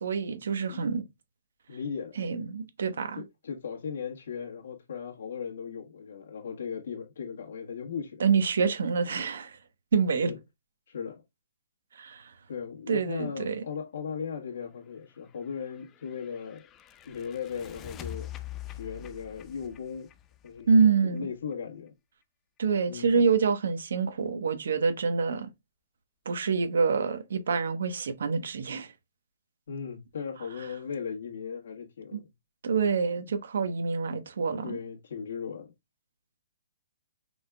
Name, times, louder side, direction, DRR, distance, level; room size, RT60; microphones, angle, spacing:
voice 1, 0.0-1.0 2.2-3.2 8.2-9.6 9.9-10.3 11.9-12.3 12.9-13.6 20.7-21.3 22.6-25.5 26.3-28.9 32.1-32.2 32.6-34.8, right 5 dB, 70° right, 1.0 m, -26 dB
voice 2, 1.7-2.2 3.2-8.2 10.2-10.4 10.9-11.2 12.5-16.7 17.0-18.3 18.7-20.1 20.4-21.9 22.9-23.2 29.7-32.3 34.6-35.7, left 6 dB, 65° left, 1.4 m, -37 dB
sound 1, 15.4-21.2, left 11 dB, 15° left, 0.4 m, -44 dB
6.1 x 3.5 x 2.2 m
hypercardioid pair, 165°, 0 cm